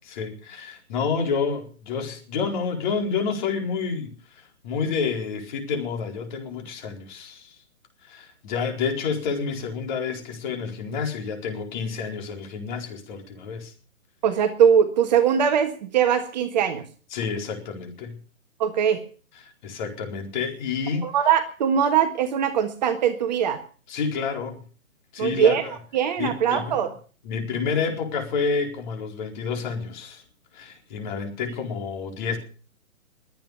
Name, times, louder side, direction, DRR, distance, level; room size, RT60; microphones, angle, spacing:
voice 1, 0.0-7.6 8.0-13.7 17.1-18.2 19.6-21.1 23.9-24.6 25.1-25.6 26.2-26.8 27.2-30.2 30.5-32.4, left 5 dB, 35° left, 3 dB, 4.4 m, -29 dB
voice 2, 14.2-16.8 18.6-19.0 21.0-23.6 25.2-25.7 25.9-26.9, right 8 dB, 30° right, 8 dB, 1.5 m, -21 dB
22.0 x 9.1 x 6.7 m, 0.40 s
hypercardioid pair, 150°, 41 cm